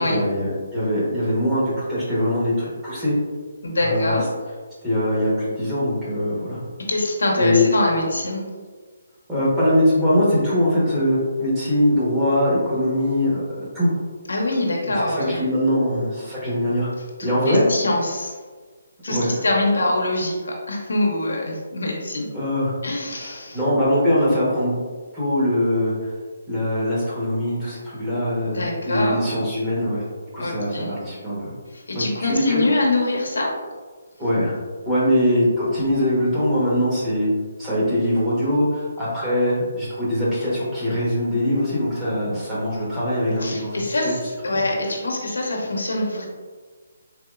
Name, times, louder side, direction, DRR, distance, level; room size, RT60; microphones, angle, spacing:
voice 1, 0.0-3.1 3.8-4.2 4.8-6.6 7.4-7.7 9.3-13.9 15.0-16.9 17.2-17.6 19.1-19.4 22.3-22.7 23.2-24.7 25.1-25.9 26.5-30.0 30.3-31.4 31.9-32.7 34.2-34.6 34.8-37.3 37.6-44.1, left 1 dB, 10° right, -10 dB, 1.0 m, -22 dB
voice 2, 3.6-4.3 6.9-8.5 14.3-15.4 17.2-18.3 19.0-22.3 22.8-23.6 28.4-29.3 30.4-30.9 31.7-33.5 43.4-46.3, left 2 dB, 90° left, -1 dB, 0.7 m, -24 dB
3.5 x 2.8 x 2.4 m, 1.5 s
hypercardioid pair, 160°, 0 cm